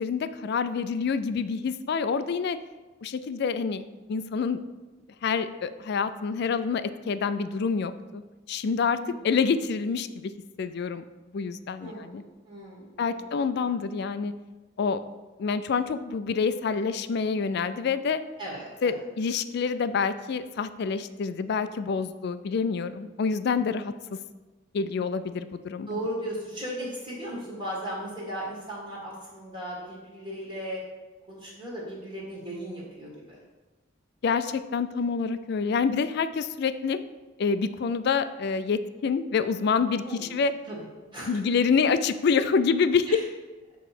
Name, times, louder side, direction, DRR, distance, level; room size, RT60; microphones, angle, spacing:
voice 1, 0.0-2.6 3.0-4.6 5.2-8.2 8.5-9.0 9.2-10.3 10.6-11.0 11.3-12.2 13.0-14.3 14.8-15.0 15.4-18.2 18.8-23.9 24.7-26.0 34.2-37.0 37.4-40.0 40.3-40.5 41.3-43.1, left 5 dB, 55° left, 12 dB, 0.3 m, -27 dB
voice 2, 9.0-9.4 11.8-13.8 18.4-19.0 25.9-30.8 31.3-33.4 40.0-40.3 40.7-40.8 41.1-41.4 43.1-43.2, right 1 dB, 25° right, -5 dB, 1.7 m, -37 dB
6.7 x 3.1 x 5.9 m, 1.2 s
head